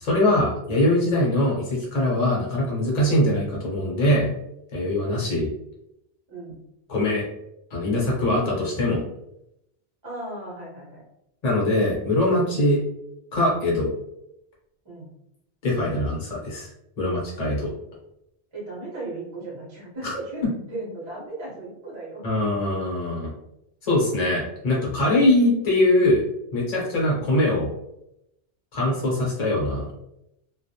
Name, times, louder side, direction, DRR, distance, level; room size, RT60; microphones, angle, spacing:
voice 1, 0.0-4.3 4.7-5.5 6.9-7.2 7.7-9.0 11.4-12.8 13.3-13.9 15.6-16.7 17.0-17.7 20.0-20.1 22.2-23.3 23.8-26.2 26.5-27.7 28.7-29.9, left 1 dB, 40° left, -3 dB, 0.8 m, -22 dB
voice 2, 6.3-6.6 10.0-11.0 14.8-15.1 18.5-22.2 28.8-29.0, right 2 dB, 30° right, -5 dB, 0.8 m, -36 dB
2.2 x 2.0 x 2.7 m, 0.82 s
omnidirectional pair, 1.1 m